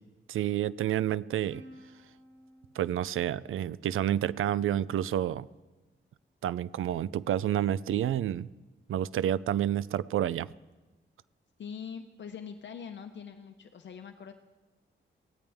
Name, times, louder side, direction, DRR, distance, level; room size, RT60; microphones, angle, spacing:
voice 1, 0.3-1.6 2.8-5.5 6.4-8.5 8.9-10.5, right 11 dB, 85° right, 19 dB, 0.4 m, -29 dB
Plucked string instrument, 1.5-4.3, equal, 70° right, 4.5 m, -55 dB
voice 2, 11.6-14.3, left 7 dB, 60° left, 6 dB, 0.8 m, -43 dB
23.0 x 17.0 x 3.5 m, 1.1 s
wide cardioid pair, 150°, 20 cm